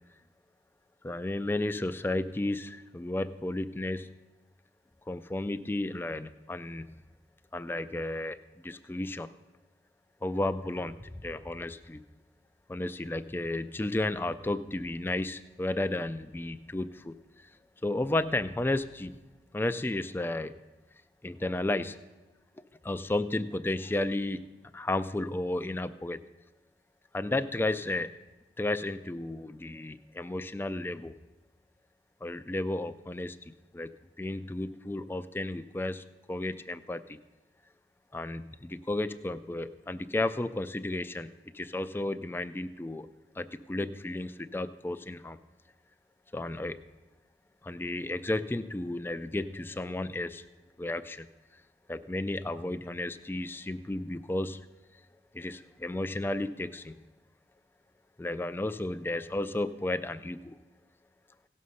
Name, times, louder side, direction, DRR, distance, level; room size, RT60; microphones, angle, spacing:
voice 1, 1.0-4.1 5.1-6.9 7.5-8.4 8.6-9.3 10.2-12.0 12.7-17.1 17.8-19.1 19.5-20.6 21.2-22.0 22.8-24.5 24.7-26.2 27.1-28.1 28.6-31.1 32.2-33.9 34.2-37.2 38.1-41.3 41.5-43.1 43.4-45.4 46.3-46.8 47.6-50.4 50.8-51.3 51.9-54.6 55.3-57.0 58.2-60.5, left 2 dB, 10° left, 12 dB, 0.3 m, -33 dB
17.0 x 6.4 x 5.5 m, 1.1 s
head